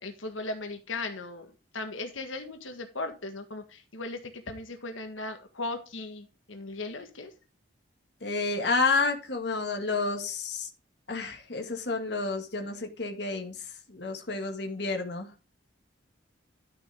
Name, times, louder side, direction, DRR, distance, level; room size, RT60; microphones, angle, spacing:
voice 1, 0.0-7.3, left 2 dB, 90° left, 6 dB, 1.7 m, -37 dB
voice 2, 8.2-10.7 11.1-15.3, left 3 dB, 60° left, 4 dB, 1.9 m, -30 dB
11.5 x 7.1 x 3.5 m, 0.32 s
head